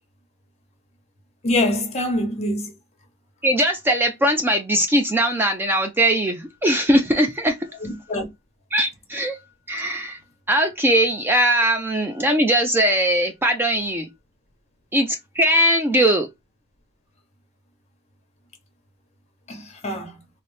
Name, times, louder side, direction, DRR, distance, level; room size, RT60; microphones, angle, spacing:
voice 1, 1.4-2.7 7.8-8.2 19.5-20.1, left 1 dB, 35° left, 0.9 m, -24 dB
voice 2, 3.4-7.6 8.7-9.4 9.7-10.2 10.5-14.1 14.9-16.3, right 1 dB, 10° right, 0.4 m, -20 dB
4.0 x 2.0 x 3.1 m
head